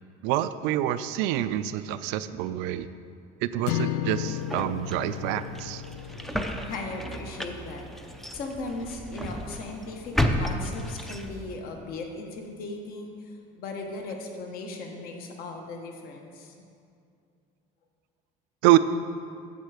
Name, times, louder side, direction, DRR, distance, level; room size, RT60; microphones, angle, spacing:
voice 1, 0.2-2.9 3.4-5.8 18.6-18.8, right 14 dB, 85° right, 12 dB, 0.4 m, -26 dB
sound 1, 3.7-8.0, left 12 dB, 70° left, 0.4 m, -34 dB
sound 2, 4.1-11.6, equal, ahead, 0.4 m, -33 dB
voice 2, 6.6-7.9 8.3-16.7, left 3 dB, 55° left, 3 dB, 1.3 m, -37 dB
9.4 x 7.2 x 4.9 m, 2.4 s
cardioid pair, 145°, 18 cm